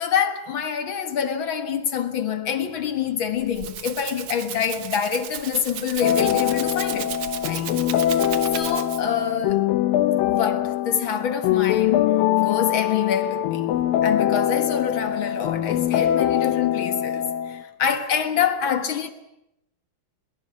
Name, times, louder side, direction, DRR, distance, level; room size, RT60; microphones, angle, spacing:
voice 1, 0.0-7.1 7.5-7.7 8.5-9.7 10.3-19.1, left 8 dB, 50° left, 1.7 m, -26 dB
Rattle (instrument), 3.3-9.2, right 10 dB, 80° right, 1.2 m, -34 dB
sound 1, 6.0-17.6, left 12 dB, 80° left, 2.7 m, -23 dB
22.0 x 22.0 x 8.3 m
omnidirectional pair, 4.1 m